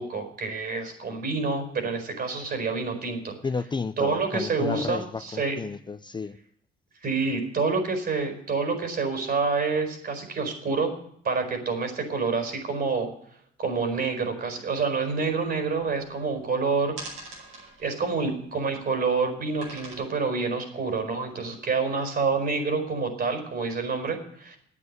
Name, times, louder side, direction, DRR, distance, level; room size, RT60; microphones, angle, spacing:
voice 1, 0.0-3.3 4.0-5.5 7.0-10.9 11.2-13.1 13.6-17.0 17.8-24.6, right 4 dB, 55° right, 5 dB, 4.7 m, -27 dB
voice 2, 3.4-6.4, left 4 dB, 25° left, 10 dB, 0.5 m, -32 dB
sound 1, 15.0-15.1 15.3-16.5 16.9-18.9 19.6-19.9, right 2 dB, 85° right, 5.9 m, -42 dB
9.8 x 9.3 x 9.6 m, 0.67 s
cardioid pair, 90°, 20 cm